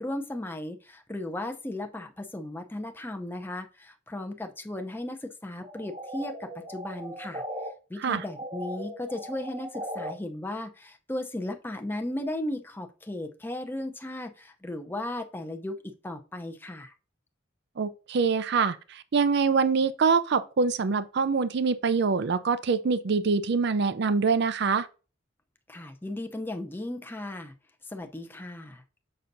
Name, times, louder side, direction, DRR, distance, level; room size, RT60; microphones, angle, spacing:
voice 1, 0.0-7.4 7.9-16.9 25.7-27.5 27.9-28.8, left 1 dB, 10° left, 0.6 m, -36 dB
sound 1, 5.6-7.7 8.0-10.1, equal, 30° right, 0.9 m, -38 dB
voice 2, 17.8-24.9, right 5 dB, 60° right, 0.4 m, -25 dB
6.6 x 5.6 x 2.6 m
head